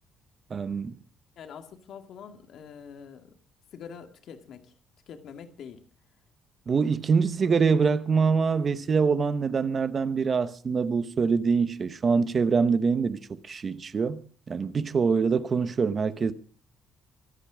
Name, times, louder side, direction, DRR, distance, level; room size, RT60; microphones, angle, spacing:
voice 1, 0.5-1.0 6.7-16.3, right 5 dB, 25° right, 1.0 m, -25 dB
voice 2, 1.4-3.3 3.7-4.7 5.1-5.8, left 7 dB, 50° left, 2.0 m, -45 dB
24.5 x 9.0 x 5.0 m
cardioid pair, 180°, 0 cm